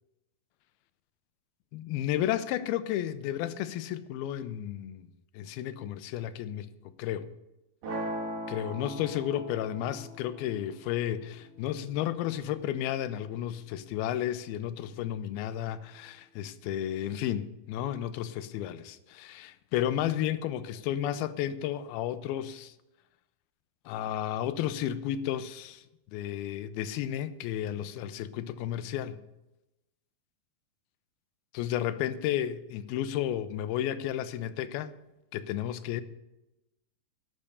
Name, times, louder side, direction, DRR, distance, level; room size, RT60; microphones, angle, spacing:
voice 1, 1.7-5.1 5.3-7.3 8.5-22.7 23.9-25.8 26.1-29.2 31.5-34.9 35.3-36.0, left 11 dB, 80° left, 2.5 m, -32 dB
sound 1, 7.8-13.9, right 1 dB, 60° right, 3.9 m, -41 dB
12.0 x 8.6 x 6.8 m
omnidirectional pair, 4.5 m